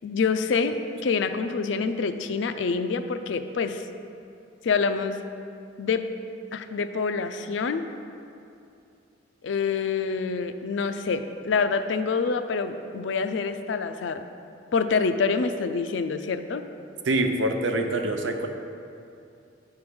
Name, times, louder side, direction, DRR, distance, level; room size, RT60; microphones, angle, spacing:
voice 1, 0.0-0.8 1.0-3.8 4.6-5.2 5.8-6.0 6.5-7.8 9.4-14.2 14.7-16.7, left 5 dB, 80° left, 9 dB, 0.4 m, -26 dB
voice 2, 17.1-18.5, right 2 dB, 80° right, 5 dB, 0.7 m, -25 dB
9.4 x 3.8 x 6.0 m, 2.6 s
head